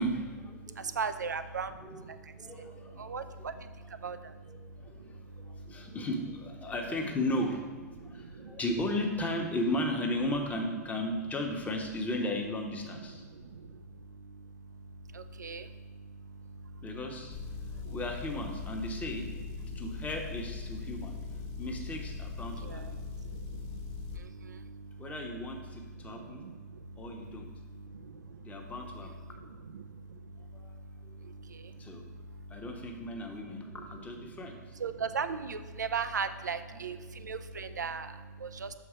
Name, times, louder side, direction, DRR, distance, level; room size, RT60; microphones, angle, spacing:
voice 1, 0.0-0.9 1.8-2.1 2.4-3.5 4.5-13.2 16.8-17.4 17.7-19.3 19.6-22.8 25.0-26.4 27.0-27.5 28.4-29.1 30.6-30.7 31.0-31.2 31.8-32.0 32.5-34.6, left 1 dB, 15° left, 2 dB, 1.1 m, -35 dB
voice 2, 0.6-5.9 7.9-8.6 13.1-16.9 17.5-18.0 19.7-20.0 20.9-21.6 22.6-25.1 25.7-28.7 29.4-32.6 33.6-33.9 34.3-38.7, right 5 dB, 80° right, 11 dB, 0.4 m, -41 dB
Motor vehicle (road) / Engine, 17.3-24.2, left 5 dB, 45° left, 0.9 m, -41 dB
7.0 x 4.6 x 5.0 m, 1.4 s
figure-of-eight pair, 100°, 9 cm